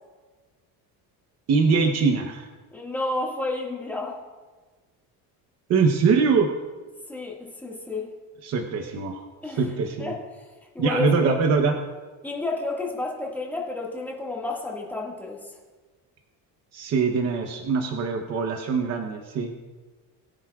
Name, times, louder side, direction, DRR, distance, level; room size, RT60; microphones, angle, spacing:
voice 1, 1.5-2.5 5.7-6.5 8.4-9.2 9.4-10.1 10.8-11.7 16.7-19.5, right 5 dB, 40° right, 4 dB, 1.0 m, -23 dB
voice 2, 2.7-4.2 7.1-8.1 9.4-9.7 10.0-10.2 10.7-11.3 12.2-15.5, left 2 dB, 5° left, -3 dB, 1.9 m, -30 dB
22.0 x 9.6 x 2.4 m, 1.3 s
cardioid pair, 165°, 38 cm